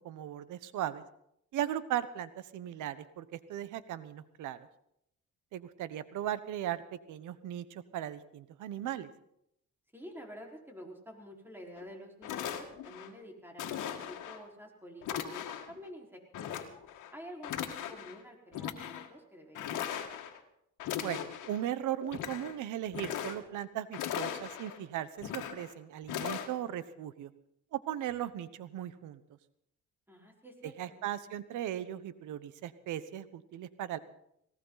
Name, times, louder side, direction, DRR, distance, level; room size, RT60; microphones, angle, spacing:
voice 1, 0.0-1.0 1.5-4.6 5.5-6.8 7.1-9.1 21.0-27.3 27.7-29.2 30.8-34.0, right 11 dB, 85° right, 14 dB, 1.1 m, -37 dB
voice 2, 9.9-16.2 17.1-20.1 30.1-31.0, equal, 5° right, 0 dB, 4.7 m, -49 dB
sound 1, 11.8-11.9 12.2-13.1 13.6-14.4 15.0-15.8 16.3-17.1 17.4-18.2 18.5-19.1 19.6-20.4 20.8-21.6 22.0-22.6 22.9-23.6 23.9-24.8 25.2-25.7 26.1-26.5, left 10 dB, 85° left, 1.9 m, -38 dB
19.0 x 18.5 x 4.1 m, 0.76 s
cardioid pair, 90°, 30 cm